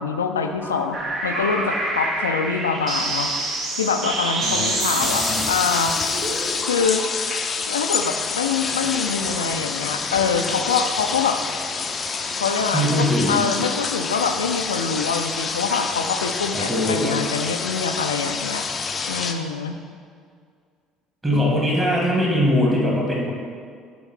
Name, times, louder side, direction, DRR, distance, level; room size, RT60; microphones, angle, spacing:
voice 1, 0.0-3.3 3.8-6.0 6.7-7.0 7.7-11.4 12.4-18.7 19.1-19.8 21.3-21.5, left 5 dB, 75° left, 6 dB, 0.4 m, -25 dB
sound 1, 0.6-7.1, right 2 dB, 45° right, 1.2 m, -27 dB
voice 2, 4.4-5.4 12.7-13.4 16.5-17.1 21.2-23.3, equal, 15° right, -3 dB, 2.1 m, -22 dB
sound 2, 4.8-19.3, left 5 dB, 30° left, 0.6 m, -27 dB
11.0 x 3.9 x 4.4 m, 2.1 s
figure-of-eight pair, 55°, 0 cm